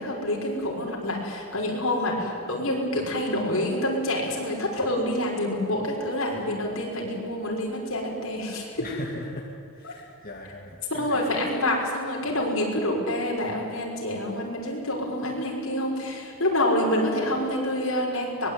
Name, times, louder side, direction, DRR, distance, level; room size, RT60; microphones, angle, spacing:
voice 1, 0.0-8.9 9.8-9.9 10.9-18.5, left 1 dB, 65° left, -1 dB, 6.1 m, -27 dB
voice 2, 8.8-9.5 9.7-11.2, left 2 dB, 40° left, -1 dB, 2.3 m, -39 dB
23.5 x 21.0 x 9.6 m, 2.4 s
head